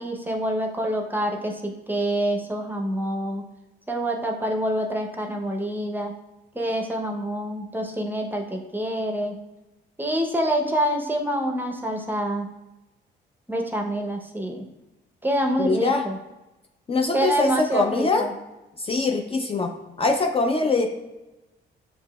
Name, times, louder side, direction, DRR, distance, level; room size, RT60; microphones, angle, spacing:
voice 1, 0.0-3.4 3.9-6.1 6.5-9.4 10.0-12.5 13.5-14.6 15.2-16.2 17.1-18.3, right 1 dB, 10° right, 1 dB, 0.7 m, -26 dB
voice 2, 15.6-16.0 16.9-18.3 18.8-19.7 20.0-20.9, left 3 dB, 30° left, 3 dB, 0.5 m, -23 dB
6.9 x 2.8 x 2.2 m, 1.0 s
cardioid pair, 90°, 20 cm